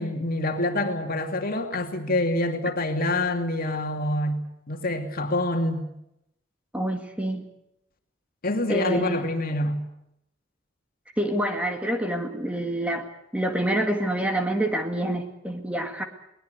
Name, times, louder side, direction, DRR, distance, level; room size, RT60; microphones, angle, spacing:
voice 1, 0.0-5.8 8.4-9.8, left 1 dB, 50° left, 5 dB, 2.7 m, -26 dB
voice 2, 6.7-7.4 8.7-9.2 11.2-13.1 13.3-16.0, right 1 dB, 5° right, 5 dB, 2.0 m, -27 dB
22.0 x 20.0 x 8.1 m, 0.81 s
head